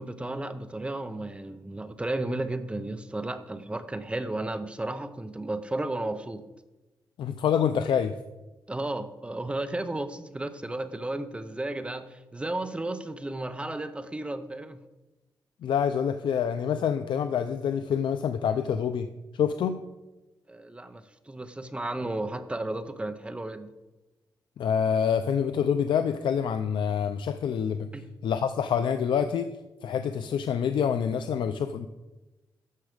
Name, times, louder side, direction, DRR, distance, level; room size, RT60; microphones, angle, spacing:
voice 1, 0.0-6.4 8.7-14.8 20.5-23.7 27.9-28.1, right 2 dB, 15° right, 10 dB, 0.7 m, -33 dB
voice 2, 7.2-8.1 15.6-19.1 19.3-19.8 24.6-27.9 28.2-29.6 29.8-31.9, left 7 dB, 85° left, 9 dB, 0.5 m, -26 dB
12.0 x 7.2 x 5.1 m, 1.1 s
wide cardioid pair, 130°, 8 cm